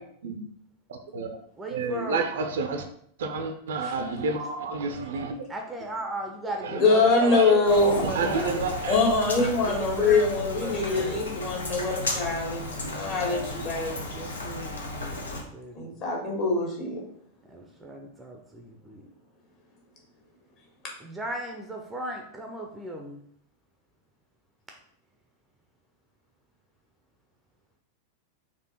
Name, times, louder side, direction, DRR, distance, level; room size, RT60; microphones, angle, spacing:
voice 1, 0.9-1.3 1.7-2.9 3.2-5.4 6.6-6.8 7.2-9.0, right 4 dB, 60° right, 6 dB, 0.6 m, -30 dB
voice 2, 1.6-2.2 5.5-8.7 9.6-11.4 13.0-16.0 17.5-19.1 21.0-23.2, right 1 dB, 10° right, 2 dB, 0.6 m, -38 dB
voice 3, 6.7-8.0 8.9-14.0 15.7-17.0, left 3 dB, 40° left, -2 dB, 1.7 m, -24 dB
Rain, 7.6-15.4, left 2 dB, 70° left, 0.8 m, -34 dB
4.3 x 2.8 x 4.3 m, 0.65 s
figure-of-eight pair, 90°, 0 cm